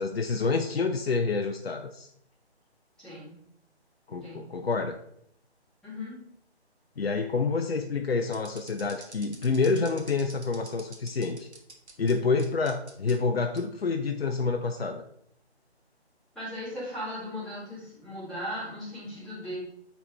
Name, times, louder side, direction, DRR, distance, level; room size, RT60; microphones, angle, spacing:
voice 1, 0.0-2.1 4.1-4.9 7.0-11.5 12.0-15.0, left 4 dB, 65° left, 5 dB, 0.6 m, -28 dB
voice 2, 3.0-3.3 4.2-4.4 5.8-6.1 16.3-19.6, equal, ahead, -13 dB, 2.0 m, -37 dB
sound 1, 8.3-12.1 12.4-13.1 13.6-13.7 14.3-14.6, right 3 dB, 80° right, 1.5 m, -47 dB
9.1 x 4.1 x 3.4 m, 0.70 s
figure-of-eight pair, 155°, 33 cm